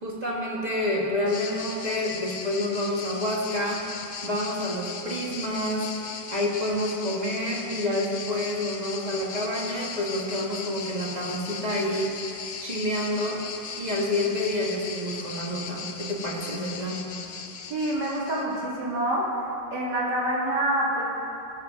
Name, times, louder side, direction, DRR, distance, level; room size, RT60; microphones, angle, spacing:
voice 1, 0.0-3.8 4.2-5.8 6.3-12.1 12.6-13.4 13.8-17.0, left 1 dB, 25° right, -5 dB, 1.9 m, -28 dB
sound 1, 1.3-18.6, left 6 dB, 60° left, 0.6 m, -38 dB
voice 2, 17.7-19.2 19.7-21.0, right 1 dB, 75° right, -5 dB, 3.0 m, -26 dB
18.5 x 6.5 x 6.1 m, 2.7 s
omnidirectional pair, 1.9 m